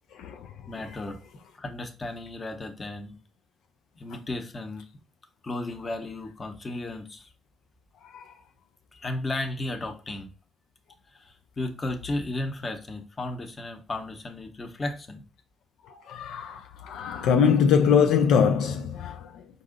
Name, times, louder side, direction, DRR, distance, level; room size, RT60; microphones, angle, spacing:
voice 1, 0.7-1.2 1.6-3.2 3.9-4.8 5.4-7.3 8.9-10.3 11.2-15.2, left 2 dB, 30° left, 0.8 m, -34 dB
voice 2, 16.1-19.3, left 7 dB, 85° left, 0.4 m, -22 dB
4.7 x 2.7 x 3.8 m
cardioid pair, 90°, 0 cm